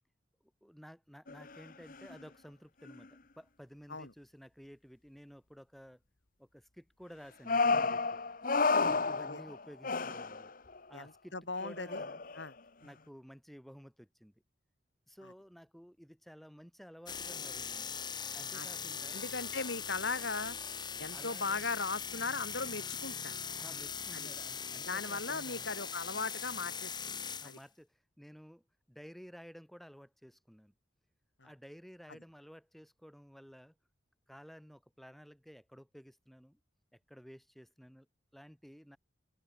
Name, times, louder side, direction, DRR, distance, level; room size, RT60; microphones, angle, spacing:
voice 1, 0.4-6.0 6.4-8.2 8.8-10.5 10.9-11.3 11.6-12.2 12.8-14.3 15.1-17.9 18.3-19.2 21.1-21.6 23.6-25.7 27.4-30.7 31.4-33.7 34.3-36.6 36.9-38.1 38.3-39.0, equal, ahead, 4.0 m, -53 dB
sound 1, 1.3-1.6 1.9-2.2 2.9-3.0 7.5-10.8 11.6-12.5, left 4 dB, 50° left, 1.3 m, -31 dB
voice 2, 10.9-12.0 12.4-12.5 18.5-18.7 19.1-20.6 21.0-23.4 24.1-24.3 24.9-27.2 27.4-27.6 31.4-31.5, left 4 dB, 80° left, 4.0 m, -38 dB
sound 2, 17.1-27.6, left 7 dB, 25° left, 1.8 m, -41 dB
open air
head